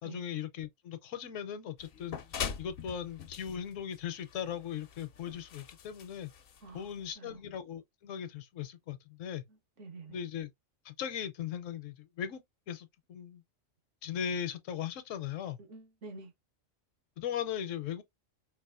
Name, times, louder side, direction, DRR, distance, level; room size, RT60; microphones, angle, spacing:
voice 1, 0.0-2.2 2.6-6.3 6.7-9.4 10.1-10.5 10.9-12.4 12.7-13.4 14.0-15.6 17.2-18.0, left 9 dB, 75° left, 1.0 m, -38 dB
sound 1, 1.8-7.1, left 7 dB, 60° left, 0.7 m, -43 dB
voice 2, 6.6-7.4 9.5-10.2 15.7-16.3, right 3 dB, 65° right, 1.4 m, -49 dB
4.7 x 2.4 x 2.4 m
omnidirectional pair, 1.4 m